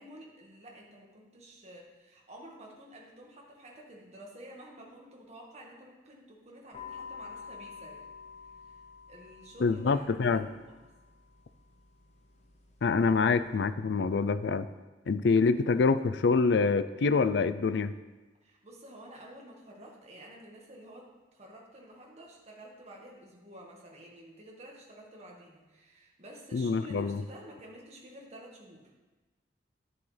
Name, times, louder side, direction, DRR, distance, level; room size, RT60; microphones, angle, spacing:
voice 1, 0.0-8.1 8.4-8.8 9.1-10.9 18.4-28.9, right 1 dB, 40° right, -2 dB, 1.6 m, -51 dB
sound 1, 6.7-13.7, left 6 dB, 40° left, 1.1 m, -49 dB
voice 2, 9.6-10.4 12.8-14.7 15.1-17.9 26.5-27.2, left 4 dB, 70° left, 13 dB, 0.4 m, -26 dB
10.5 x 7.1 x 3.3 m, 1.2 s
head